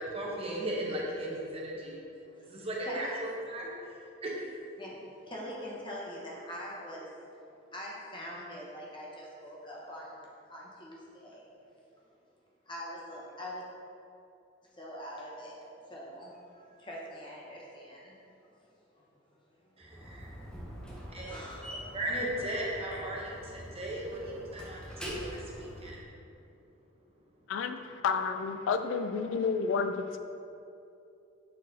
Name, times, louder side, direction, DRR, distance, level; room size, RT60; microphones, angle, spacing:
voice 1, 0.0-2.0 2.5-3.7 4.2-4.5 19.8-20.3 21.1-21.3 21.9-26.0, right 1 dB, 30° right, -3 dB, 1.0 m, -36 dB
voice 2, 2.2-3.1 4.8-7.1 7.7-11.5 12.7-13.6 14.7-15.6 15.9-18.2 18.9-19.1 19.6-19.8 21.2-22.1 22.9-23.0, equal, 25° left, -4 dB, 1.1 m, -44 dB
Slam, 19.8-26.0, equal, 5° left, 0.8 m, -45 dB
voice 3, 27.5-30.2, left 5 dB, 85° left, 9 dB, 0.3 m, -30 dB
6.6 x 4.0 x 4.1 m, 2.7 s
head